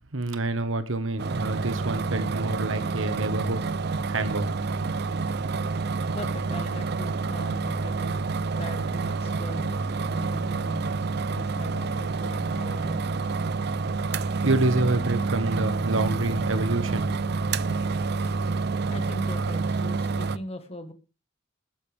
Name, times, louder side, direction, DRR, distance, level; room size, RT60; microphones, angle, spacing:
voice 1, 0.1-3.6 4.1-4.5 14.4-17.1, right 2 dB, 75° right, 1.4 m, -27 dB
sound 1, 1.2-20.4, right 4 dB, 55° right, 0.6 m, -28 dB
voice 2, 6.1-8.2 8.5-9.8 10.1-10.9 11.3-13.2 18.9-20.9, left 1 dB, 30° left, 1.5 m, -40 dB
20.5 x 10.5 x 3.5 m
head